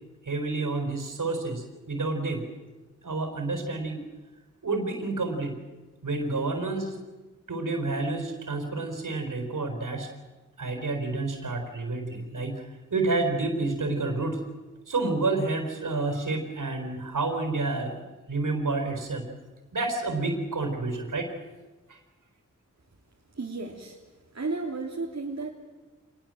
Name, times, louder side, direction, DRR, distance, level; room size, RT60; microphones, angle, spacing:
voice 1, 0.2-2.4 3.0-4.0 4.6-5.6 6.0-7.0 7.5-10.1 10.6-12.6 12.9-14.4 14.9-19.2 19.7-21.3 21.9-22.0, right 3 dB, 75° right, 6 dB, 4.4 m, -29 dB
voice 2, 23.3-24.0 24.3-25.5, right 3 dB, 55° right, -1 dB, 3.0 m, -33 dB
25.5 x 20.0 x 7.8 m, 1.2 s
cardioid pair, 55°, 32 cm